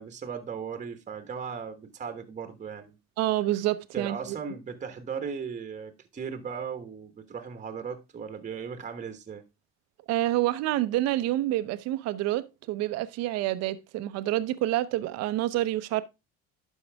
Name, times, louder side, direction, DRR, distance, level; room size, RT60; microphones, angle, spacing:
voice 1, 0.0-3.0 3.9-9.4, right 6 dB, 25° right, 1.2 m, -37 dB
voice 2, 3.2-4.4 10.1-16.0, right 15 dB, 60° right, 0.8 m, -28 dB
12.0 x 4.8 x 3.4 m
supercardioid pair, 105°, 29 cm